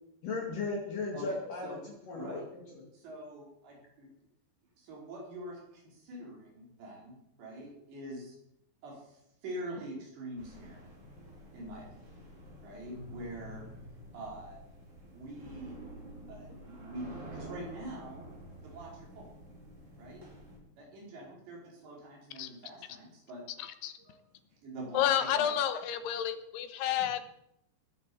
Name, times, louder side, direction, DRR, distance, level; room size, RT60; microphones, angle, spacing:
voice 1, 0.2-1.8 2.1-2.4 2.7-2.9 27.0-27.1, left 3 dB, 55° left, -2 dB, 3.8 m, -36 dB
voice 2, 2.9-4.1 4.8-8.4 8.8-10.8 11.5-11.9 12.6-13.6 14.1-14.6 15.1-15.8 16.3-18.3 18.6-19.3 20.0-20.2 20.8-23.4 24.0-24.2 24.6-25.1 25.3-25.5, right 1 dB, 80° right, -2 dB, 6.9 m, -44 dB
sound 1, 10.4-20.6, right 1 dB, 35° right, 5.0 m, -49 dB
voice 3, 23.6-23.9 24.9-27.3, left 10 dB, 75° left, 10 dB, 3.0 m, -30 dB
20.0 x 8.8 x 7.1 m, 0.78 s
omnidirectional pair, 5.0 m